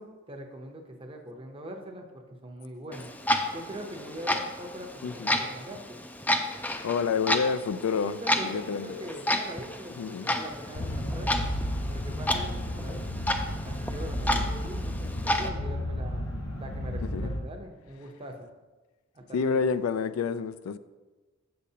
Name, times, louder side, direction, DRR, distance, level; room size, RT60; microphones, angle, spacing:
voice 1, 0.0-3.1 3.5-6.0 8.0-11.3 11.9-13.1 13.6-18.5 19.1-19.6, equal, 25° right, 0.7 m, -42 dB
Clock, 2.9-15.5, left 1 dB, 10° left, 0.3 m, -31 dB
voice 2, 5.0-5.4 6.8-9.1 10.0-10.3 14.3-14.5 17.1-17.3 19.3-20.8, left 5 dB, 90° left, 0.3 m, -29 dB
sound 1, 10.7-17.4, left 1 dB, 65° left, 1.0 m, -33 dB
7.3 x 6.7 x 2.8 m
head